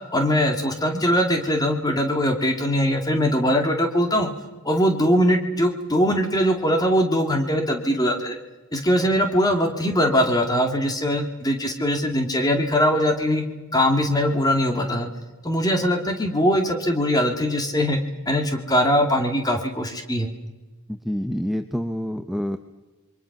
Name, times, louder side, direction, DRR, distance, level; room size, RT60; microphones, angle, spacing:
voice 1, 0.1-4.3 4.6-8.4 8.7-13.4 13.7-15.1 15.4-18.0 18.3-20.3, equal, 15° left, 4 dB, 2.3 m, -21 dB
voice 2, 20.9-22.6, equal, ahead, 6 dB, 0.7 m, -27 dB
28.0 x 23.5 x 6.0 m, 1.2 s
head